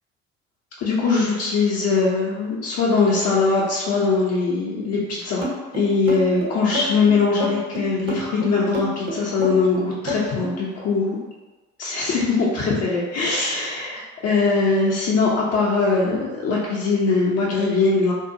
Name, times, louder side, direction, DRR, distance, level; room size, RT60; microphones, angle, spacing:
voice 1, 0.8-5.4 5.7-11.2 11.8-18.1, left 4 dB, 40° left, -5 dB, 0.6 m, -21 dB
sound 1, 5.4-10.6, left 1 dB, 35° right, 0.9 m, -28 dB
2.7 x 2.2 x 2.6 m, 1.2 s
figure-of-eight pair, 60°, 39 cm